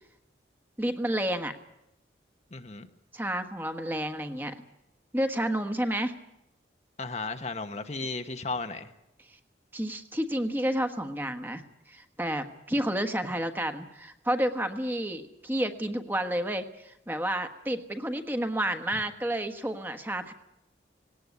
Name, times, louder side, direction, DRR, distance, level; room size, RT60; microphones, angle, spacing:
voice 1, 0.8-1.5 3.1-4.6 5.1-6.1 9.7-11.6 11.9-20.3, right 1 dB, 10° right, 8 dB, 1.3 m, -30 dB
voice 2, 2.5-2.9 7.0-8.9, left 3 dB, 40° left, 7 dB, 1.0 m, -34 dB
18.5 x 18.5 x 9.5 m, 0.86 s
head